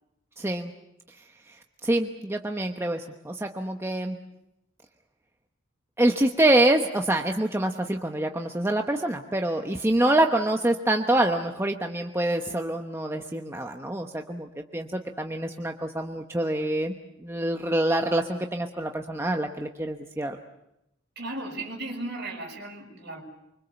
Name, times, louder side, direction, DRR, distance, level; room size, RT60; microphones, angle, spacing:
voice 1, 0.4-0.7 1.8-4.2 6.0-16.9 17.2-20.4, right 1 dB, 15° right, 3 dB, 1.0 m, -26 dB
voice 2, 21.2-23.2, right 2 dB, 55° right, 1 dB, 6.3 m, -36 dB
25.0 x 24.5 x 7.1 m, 0.86 s
head